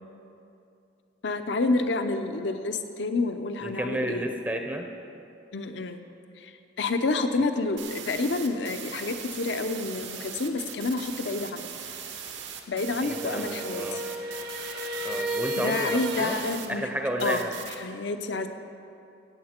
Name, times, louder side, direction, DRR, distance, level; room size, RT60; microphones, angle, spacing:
voice 1, 1.2-4.2 5.5-6.0 6.4-6.5 6.8-11.7 12.7-14.0 15.6-16.9 17.2-17.4 17.8-18.5, left 3 dB, 65° left, 8 dB, 0.6 m, -29 dB
voice 2, 3.6-4.9 13.0-14.0 15.0-16.4 16.7-17.5, right 1 dB, 10° right, 3 dB, 0.6 m, -32 dB
sound 1, 7.8-16.7 17.2-17.8, right 8 dB, 75° right, 1.1 m, -40 dB
sound 2, 13.0-16.6, right 1 dB, 55° right, 0.8 m, -33 dB
15.0 x 8.6 x 4.4 m, 2.7 s
head